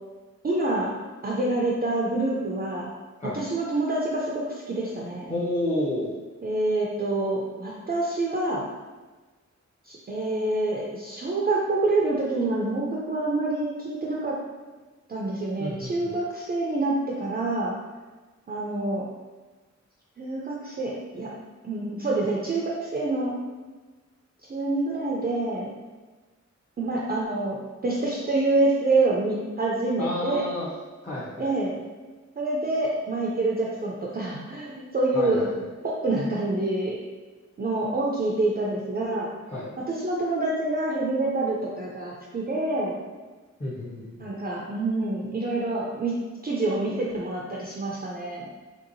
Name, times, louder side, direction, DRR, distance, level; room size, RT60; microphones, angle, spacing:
voice 1, 0.4-0.9 1.2-2.9 3.3-5.3 6.4-8.6 9.8-14.4 15.1-17.7 18.5-19.0 20.2-21.3 21.6-23.3 24.5-25.7 26.8-27.6 27.8-30.4 31.4-31.7 32.4-35.4 35.8-37.0 37.6-39.3 39.9-42.9 44.2-46.2 46.4-48.5, right 2 dB, 30° right, -4 dB, 0.4 m, -26 dB
voice 2, 5.3-6.2 15.6-16.1 30.0-30.7 31.0-31.5 35.1-35.5 39.5-39.7 43.6-44.3, left 1 dB, 25° left, -9 dB, 0.5 m, -30 dB
3.3 x 2.8 x 2.6 m, 1.3 s
wide cardioid pair, 135°, 29 cm